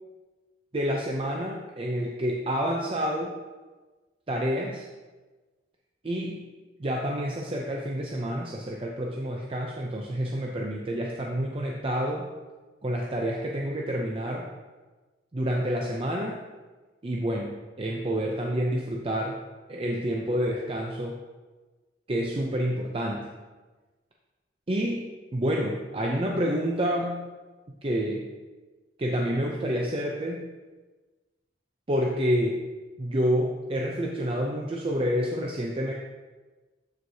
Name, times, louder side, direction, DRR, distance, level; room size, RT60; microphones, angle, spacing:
voice 1, 0.7-3.4 4.3-4.9 6.0-6.4 6.8-12.3 12.8-14.5 15.3-16.4 17.0-19.4 19.7-21.2 22.1-23.3 24.7-27.3 27.8-28.3 29.0-30.5 31.9-32.6 33.0-35.9, equal, 30° right, -1 dB, 0.5 m, -28 dB
12.5 x 4.7 x 2.7 m, 1.3 s
head